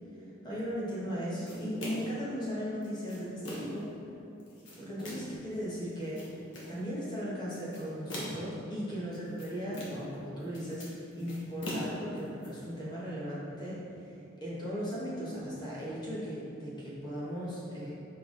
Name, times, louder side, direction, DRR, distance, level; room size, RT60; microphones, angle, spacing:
voice 1, 0.4-3.9 4.8-6.2 6.7-14.1 14.4-17.9, equal, 20° left, -8 dB, 1.3 m, -37 dB
sound 1, 1.5-2.2 2.8-3.8 4.4-5.4 5.9-6.8 7.5-8.6 9.1-10.2 10.4-12.5, left 1 dB, 65° left, 1.2 m, -41 dB
5.2 x 4.6 x 3.9 m, 2.7 s
head